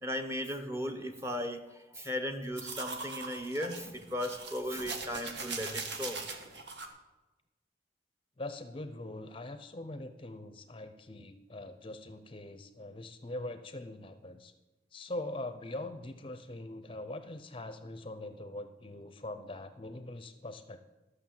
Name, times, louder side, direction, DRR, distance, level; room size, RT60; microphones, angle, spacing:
voice 1, 0.0-6.2, equal, 15° right, 6 dB, 0.9 m, -36 dB
sound 1, 2.6-6.9, right 4 dB, 70° right, 1.5 m, -41 dB
voice 2, 8.4-14.5 14.9-20.8, left 2 dB, 30° left, 10 dB, 0.6 m, -42 dB
13.0 x 6.4 x 7.6 m, 1.1 s
head